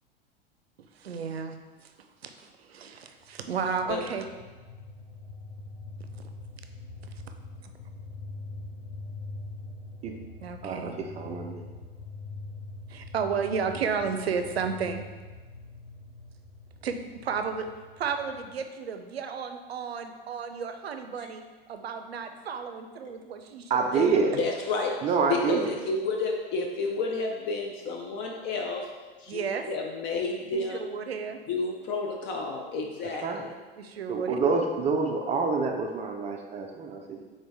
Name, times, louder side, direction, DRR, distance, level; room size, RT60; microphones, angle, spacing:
voice 1, 0.9-1.9 2.2-4.2 7.6-7.7 10.4-11.0 12.9-15.0 16.8-17.0 17.2-17.7 18.0-21.4 21.7-24.1 29.3-29.6 30.5-31.4 33.8-34.4, right 6 dB, 80° right, 7 dB, 0.5 m, -33 dB
sound 1, 3.2-18.6, left 2 dB, 80° left, 0.6 m, -44 dB
voice 2, 10.6-11.7 23.7-24.5 25.0-25.8 33.0-33.4 34.1-37.2, right 4 dB, 25° right, 2 dB, 0.4 m, -27 dB
voice 3, 24.3-25.0 25.3-28.9 29.2-30.9 31.5-33.5, left 3 dB, 35° left, 1 dB, 0.5 m, -31 dB
3.9 x 3.7 x 3.4 m, 1.3 s
figure-of-eight pair, 80°, 30 cm